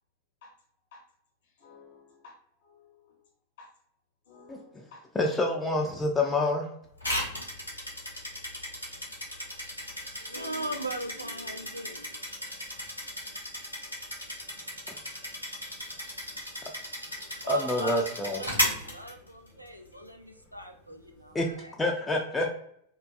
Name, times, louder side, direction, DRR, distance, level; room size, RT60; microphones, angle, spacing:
voice 1, 1.6-3.3 3.6-3.7 4.2-5.5 5.7-5.8 6.2-6.5, left 3 dB, 55° left, 0.9 m, -54 dB
voice 2, 4.5-4.8 5.2-6.7 14.9-15.0 17.5-18.4 21.3-21.5 21.8-22.5, left 2 dB, 10° left, 0.3 m, -27 dB
sound 1, 7.0-19.7, left 1 dB, 85° left, 0.7 m, -35 dB
voice 3, 10.0-12.2 17.1-21.7, right 1 dB, 90° right, 0.3 m, -39 dB
2.5 x 2.3 x 2.4 m
figure-of-eight pair, 90°, 0 cm